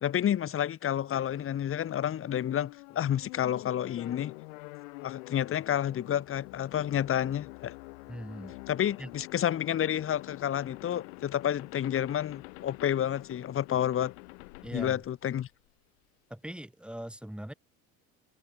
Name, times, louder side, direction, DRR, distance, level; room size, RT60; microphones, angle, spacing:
voice 1, 0.0-4.3 5.0-7.8 8.7-14.1 14.7-15.5, left 10 dB, 35° left, 1.0 m, -30 dB
sound 1, 1.1-15.7, left 26 dB, 85° left, 4.0 m, -47 dB
voice 2, 8.1-8.6 9.0-9.1 14.6-15.0 16.3-17.5, right 1 dB, 5° right, 5.0 m, -40 dB
supercardioid pair, 105°, 39 cm